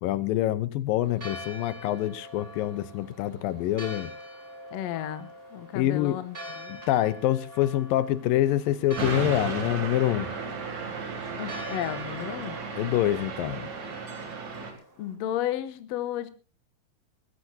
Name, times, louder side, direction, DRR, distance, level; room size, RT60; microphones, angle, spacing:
voice 1, 0.0-4.1 5.7-6.2 6.7-10.3 12.8-13.7, left 13 dB, 80° left, 2.5 m, -26 dB
Church bell, 1.0-15.1, equal, 15° right, 4.2 m, -45 dB
voice 2, 4.7-6.8 11.4-12.6 15.0-16.3, left 11 dB, 65° left, 1.8 m, -33 dB
sound 1, 9.0-14.7, right 4 dB, 55° right, 4.0 m, -34 dB
22.5 x 14.5 x 2.8 m
omnidirectional pair, 4.1 m